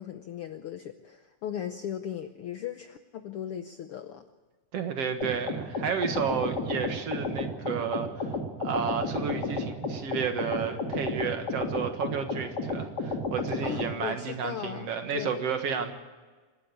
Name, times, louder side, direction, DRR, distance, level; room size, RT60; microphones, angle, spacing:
voice 1, 0.0-4.2 13.6-15.4, left 9 dB, 70° left, 9 dB, 1.3 m, -37 dB
voice 2, 4.7-8.3 8.6-15.9, right 6 dB, 60° right, 6 dB, 2.5 m, -32 dB
sound 1, 5.2-13.9, left 2 dB, 35° left, 2.4 m, -32 dB
26.5 x 11.5 x 8.5 m, 1.4 s
omnidirectional pair, 3.4 m